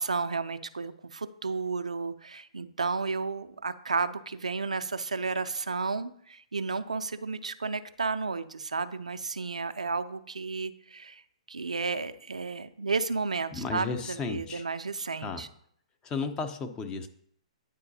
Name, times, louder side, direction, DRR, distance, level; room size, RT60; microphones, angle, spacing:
voice 1, 0.0-11.2 11.5-15.5, right 4 dB, 85° right, 11 dB, 0.4 m, -32 dB
voice 2, 13.5-14.7 15.2-15.5 16.0-17.1, left 4 dB, 20° left, 7 dB, 0.7 m, -34 dB
9.9 x 3.9 x 2.7 m, 0.66 s
figure-of-eight pair, 120°, 4 cm